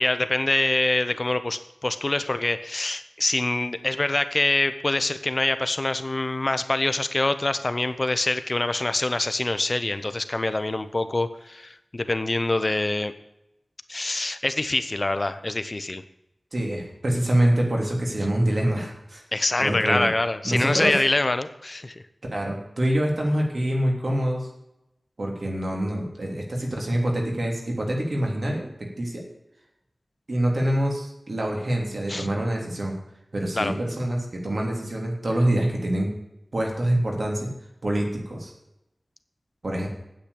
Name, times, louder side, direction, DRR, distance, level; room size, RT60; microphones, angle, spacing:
voice 1, 0.0-13.1 13.9-16.0 19.3-22.0 32.1-32.3 33.5-33.7, left 2 dB, 40° left, 11 dB, 0.8 m, -25 dB
voice 2, 16.5-19.2 19.6-20.1 20.4-20.9 22.3-24.5 25.2-28.6 29.0-29.2 30.3-33.0 33.3-36.1 36.5-37.5 37.8-38.5 39.6-39.9, right 1 dB, 65° right, 0 dB, 3.2 m, -25 dB
9.1 x 8.6 x 8.3 m, 0.86 s
wide cardioid pair, 70°, 0 cm